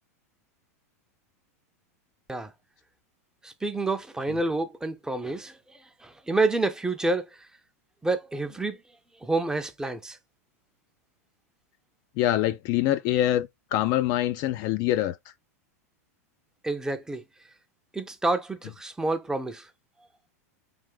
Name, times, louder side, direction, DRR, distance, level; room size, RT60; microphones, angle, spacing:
voice 1, 3.4-5.6 6.0-7.2 8.0-8.8 9.2-10.2 16.6-17.2 17.9-19.7, right 2 dB, 5° right, 0.5 m, -28 dB
voice 2, 12.2-15.2, left 13 dB, 50° left, 0.4 m, -25 dB
3.4 x 2.5 x 3.7 m
hypercardioid pair, 105°, 9 cm